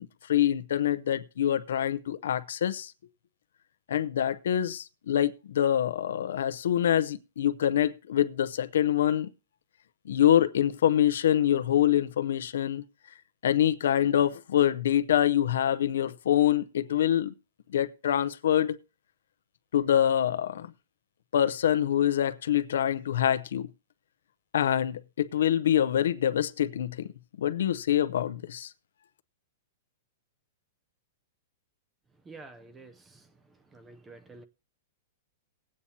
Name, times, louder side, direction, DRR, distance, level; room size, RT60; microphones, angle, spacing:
voice 1, 0.0-2.9 3.9-9.3 10.1-12.8 13.4-17.3 17.7-18.8 19.7-20.7 21.3-23.7 24.5-27.1 27.4-28.7, left 10 dB, 80° left, 0.6 m, -25 dB
voice 2, 32.3-32.9 33.7-34.4, right 3 dB, 10° right, 0.6 m, -48 dB
20.0 x 8.6 x 2.8 m
supercardioid pair, 165°, 0 cm